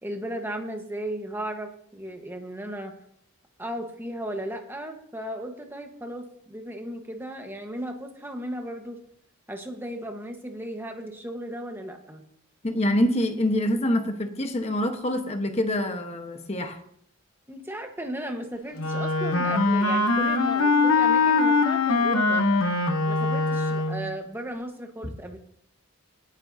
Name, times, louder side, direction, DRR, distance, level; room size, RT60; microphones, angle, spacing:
voice 1, 0.0-2.9 3.6-9.0 9.5-12.2 17.5-22.5 23.0-25.4, right 1 dB, 10° right, 3 dB, 1.3 m, -35 dB
voice 2, 12.6-16.8, left 1 dB, 30° left, 6 dB, 1.1 m, -25 dB
Wind instrument woodwind instrument, 18.8-24.1, left 3 dB, 75° left, 1.1 m, -22 dB
18.0 x 9.8 x 2.8 m, 0.68 s
head